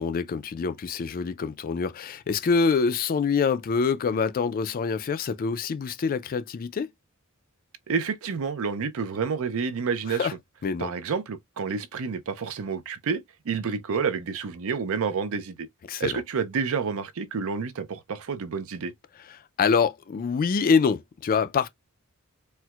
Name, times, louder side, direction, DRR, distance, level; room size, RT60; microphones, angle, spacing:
voice 1, 0.0-6.9 10.1-10.3 10.6-10.9 15.9-16.2 19.6-21.7, left 5 dB, 40° left, 0.4 m, -25 dB
voice 2, 7.9-10.3 10.8-15.7 16.0-18.9, right 5 dB, 65° right, 0.5 m, -29 dB
4.3 x 2.1 x 2.3 m
head